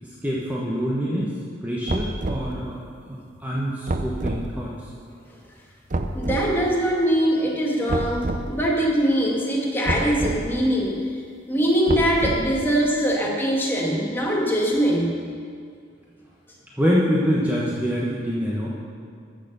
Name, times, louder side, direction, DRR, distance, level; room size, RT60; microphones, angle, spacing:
voice 1, 0.0-1.3 1.6-2.8 3.4-4.9 16.8-18.7, equal, 10° right, -5 dB, 1.2 m, -25 dB
sound 1, 1.9-2.5 3.9-4.5 5.9-6.5 7.9-8.5 9.9-10.4 11.9-12.6, right 2 dB, 40° right, 0.7 m, -27 dB
voice 2, 6.1-11.0 11.5-15.1, equal, 10° left, -3 dB, 1.9 m, -22 dB
14.0 x 6.6 x 6.8 m, 2.2 s
head